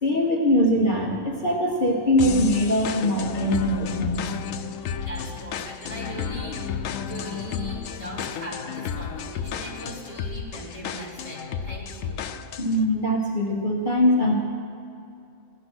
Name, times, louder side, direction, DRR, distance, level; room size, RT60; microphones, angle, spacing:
voice 1, 0.0-4.3 12.6-14.4, left 1 dB, 40° left, -1 dB, 1.2 m, -22 dB
sound 1, 2.2-12.8, left 7 dB, 85° left, 1.0 m, -32 dB
voice 2, 5.0-12.2, right 1 dB, 25° right, -8 dB, 4.0 m, -39 dB
16.5 x 11.5 x 6.2 m, 2.5 s
omnidirectional pair, 1.3 m